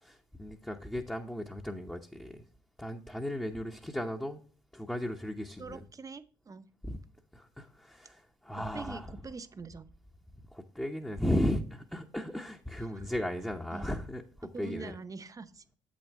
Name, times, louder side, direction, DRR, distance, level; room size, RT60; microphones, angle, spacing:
voice 1, 0.0-2.4 2.8-4.4 4.7-5.8 6.8-7.0 7.3-9.1 10.5-14.9, left 1 dB, 5° left, 0.9 m, -35 dB
voice 2, 5.6-6.7 8.7-9.9 12.9-13.0 13.7-13.8 14.5-15.6, right 4 dB, 30° right, 0.8 m, -44 dB
8.0 x 6.3 x 3.5 m
hypercardioid pair, 60°, 12 cm